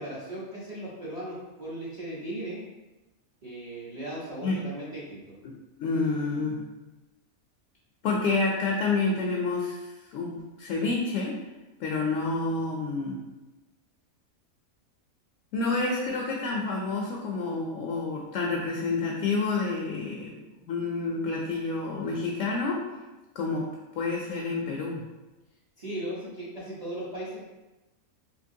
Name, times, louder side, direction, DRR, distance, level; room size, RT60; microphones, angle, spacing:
voice 1, 0.0-2.6 3.4-5.2 25.8-27.4, right 1 dB, 35° right, -8 dB, 0.7 m, -37 dB
voice 2, 5.8-6.7 8.0-11.4 11.8-13.2 15.5-22.8 23.4-23.7 24.0-25.1, left 3 dB, 70° left, -1 dB, 0.8 m, -29 dB
3.7 x 2.8 x 2.6 m, 1.1 s
omnidirectional pair, 1.6 m